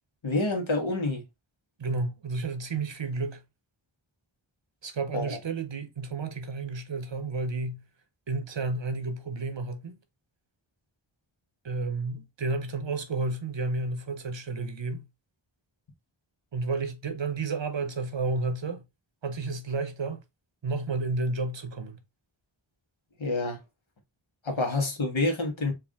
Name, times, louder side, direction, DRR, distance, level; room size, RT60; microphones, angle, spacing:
voice 1, 0.2-1.2 5.1-5.4 23.2-23.6 24.4-25.7, left 2 dB, 75° left, 1.5 m, -27 dB
voice 2, 1.8-3.4 4.8-7.8 8.3-10.0 11.6-15.1 16.5-18.8 19.2-20.2 20.6-22.0, right 3 dB, 65° right, 0.9 m, -31 dB
4.6 x 2.6 x 3.5 m
wide cardioid pair, 50°, 48 cm